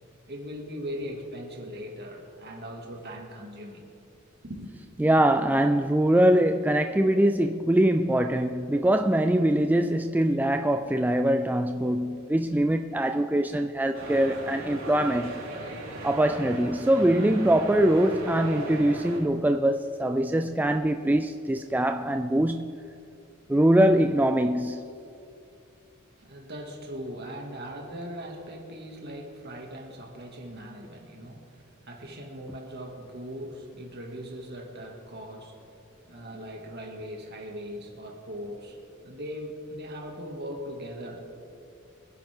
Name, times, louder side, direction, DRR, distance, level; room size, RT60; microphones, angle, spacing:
voice 1, 0.3-3.8 4.4-4.7 26.2-41.2, equal, 50° right, 2.2 m, -40 dB
voice 2, 5.0-15.3 16.0-22.8 23.5-24.9, right 1 dB, 10° right, 0.3 m, -23 dB
sound 1, 13.9-19.2, right 1 dB, 80° right, 3.8 m, -37 dB
24.0 x 10.5 x 3.7 m
head